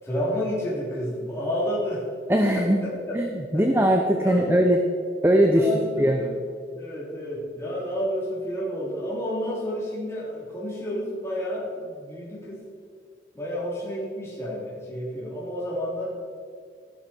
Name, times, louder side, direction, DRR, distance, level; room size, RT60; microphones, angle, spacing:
voice 1, 0.0-2.0 2.5-3.2 3.5-3.6 4.2-4.5 5.5-6.3 6.7-12.6 13.3-16.2, equal, 15° left, -7 dB, 3.7 m, -30 dB
voice 2, 2.3-2.8 3.1-3.3 3.5-4.8 5.2-5.7 6.0-6.2, equal, 15° right, 3 dB, 0.8 m, -20 dB
16.0 x 11.5 x 4.5 m, 2.3 s
head